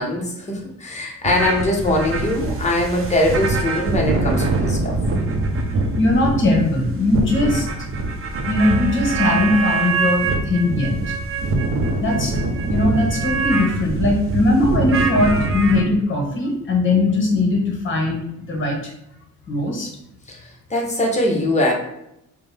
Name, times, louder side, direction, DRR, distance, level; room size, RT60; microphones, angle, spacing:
voice 1, 0.0-5.0 20.3-20.4 20.7-21.7, left 1 dB, 25° left, -1 dB, 1.1 m, -21 dB
sound 1, 1.2-15.8, right 3 dB, 45° right, 0.8 m, -23 dB
voice 2, 6.0-7.7 8.5-10.9 12.0-12.3 12.7-18.8 19.5-19.9, left 2 dB, 40° left, 1 dB, 1.3 m, -19 dB
5.1 x 2.3 x 3.5 m, 0.81 s
cardioid pair, 90°, 30 cm